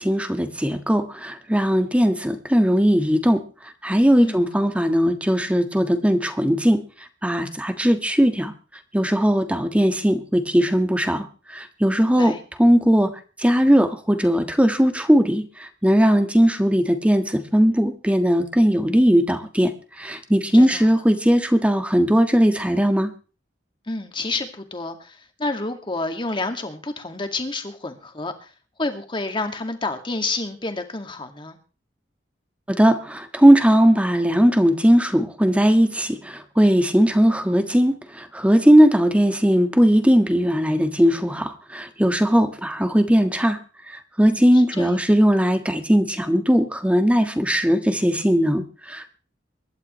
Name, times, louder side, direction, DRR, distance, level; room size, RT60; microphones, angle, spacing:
voice 1, 0.0-3.4 3.8-6.8 7.2-8.5 8.9-13.1 13.4-23.1 32.7-43.6 43.9-49.2, equal, 5° right, 7 dB, 1.5 m, -19 dB
voice 2, 12.0-12.4 20.5-20.9 23.9-28.5 28.8-31.6 44.3-45.0, left 3 dB, 25° left, 6 dB, 2.1 m, -29 dB
24.0 x 12.0 x 3.2 m, 0.35 s
head